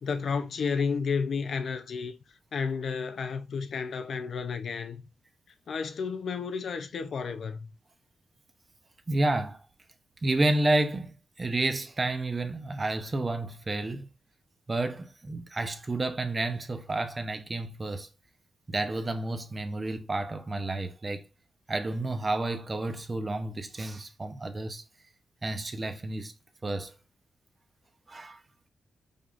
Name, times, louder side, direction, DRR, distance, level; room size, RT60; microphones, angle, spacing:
voice 1, 0.0-2.1 2.5-5.0 5.7-7.7, left 5 dB, 65° left, 0.6 m, -31 dB
voice 2, 9.1-9.6 10.2-14.1 14.7-18.1 18.7-21.3 21.7-24.8 25.4-26.3 26.6-26.9 28.1-28.4, right 2 dB, 30° right, 0.8 m, -30 dB
5.2 x 3.6 x 2.5 m
cardioid pair, 90°, 0 cm